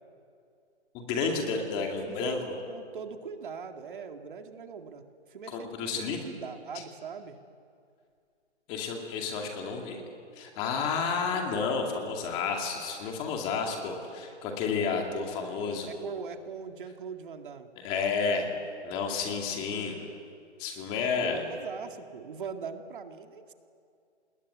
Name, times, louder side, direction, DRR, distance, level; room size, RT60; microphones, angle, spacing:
voice 1, 0.9-2.4 5.5-6.2 8.7-10.0 10.4-15.9 17.8-18.5 18.8-20.0 20.6-21.4, left 5 dB, 15° left, 2 dB, 2.4 m, -31 dB
voice 2, 2.0-2.4 2.7-5.0 5.3-7.4 15.6-17.7 21.3-23.5, right 6 dB, 45° right, 6 dB, 2.1 m, -41 dB
27.5 x 20.5 x 9.6 m, 2.3 s
hypercardioid pair, 165°, 34 cm